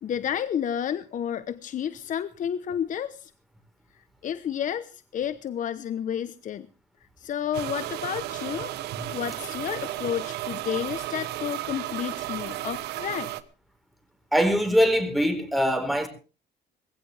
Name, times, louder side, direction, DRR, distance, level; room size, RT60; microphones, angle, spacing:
voice 1, 0.0-3.3 4.2-6.7 7.2-8.7 9.1-13.3, left 9 dB, 50° left, 1.0 m, -31 dB
sound 1, 7.5-13.4, right 14 dB, 75° right, 1.3 m, -34 dB
voice 2, 14.3-16.1, equal, ahead, 4.2 m, -22 dB
20.0 x 16.0 x 3.4 m
cardioid pair, 110°, 17 cm